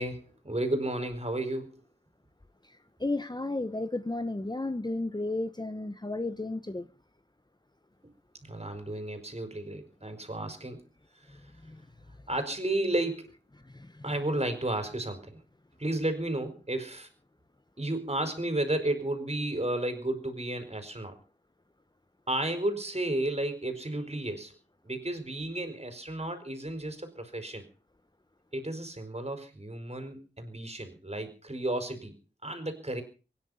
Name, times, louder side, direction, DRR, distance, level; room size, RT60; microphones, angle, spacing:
voice 1, 0.0-1.7 8.4-10.8 11.3-11.4 12.3-13.3 14.0-15.4 15.8-17.1 17.8-21.2 22.3-24.5 24.8-27.6 28.5-32.1 32.4-33.0, right 1 dB, 35° right, 4.8 m, -32 dB
voice 2, 2.6-6.9 11.3-11.9 13.6-14.1, left 2 dB, 20° left, 1.0 m, -34 dB
23.5 x 10.5 x 5.7 m
wide cardioid pair, 75°, 19 cm